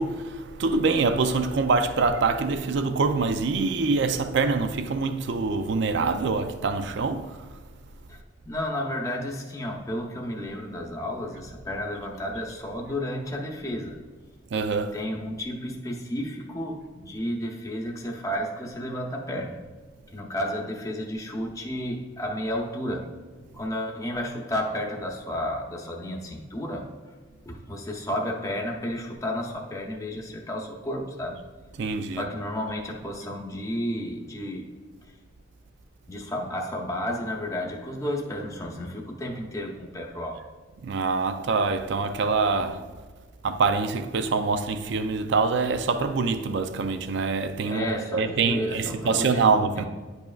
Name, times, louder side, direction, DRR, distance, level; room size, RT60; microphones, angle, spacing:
voice 1, 0.0-7.5 14.5-15.0 31.8-32.2 40.8-42.9 43.4-47.9 48.1-49.8, right 4 dB, 60° right, 0.4 m, -25 dB
voice 2, 8.5-14.0 14.9-19.6 20.1-23.1 23.5-26.9 27.5-31.4 32.1-34.7 36.1-40.4 47.7-49.4 49.8-49.9, equal, 15° left, 0.7 m, -32 dB
10.0 x 5.4 x 2.3 m
head